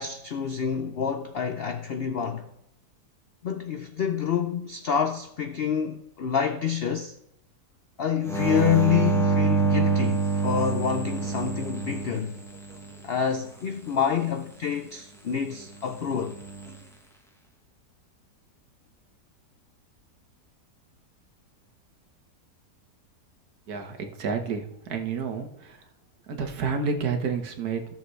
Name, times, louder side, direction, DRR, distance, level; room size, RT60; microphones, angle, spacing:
voice 1, 0.0-2.5 3.4-7.2 8.0-12.4 13.0-16.4, left 7 dB, 80° left, 0.5 m, -27 dB
sound 1, 8.3-12.9 16.2-16.7, right 4 dB, ahead, 1.1 m, -26 dB
voice 2, 23.7-25.5 26.3-27.8, right 5 dB, 65° right, 1.7 m, -29 dB
15.5 x 6.8 x 3.2 m
omnidirectional pair, 1.8 m